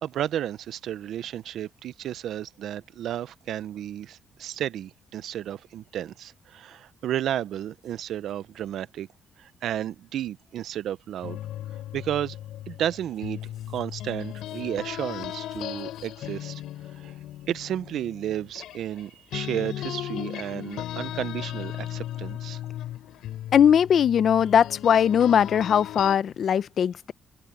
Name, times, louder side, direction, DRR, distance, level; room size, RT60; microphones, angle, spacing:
voice 1, 0.0-9.1 9.4-11.4 11.9-12.4 12.7-16.6 17.0-17.1 17.5-22.6, right 11 dB, 75° right, 0.7 m, -32 dB
sound 1, 11.2-19.0 19.3-26.2, left 13 dB, 85° left, 4.1 m, -36 dB
voice 2, 23.5-27.1, left 8 dB, 60° left, 1.0 m, -20 dB
cardioid pair, 90°, 0 cm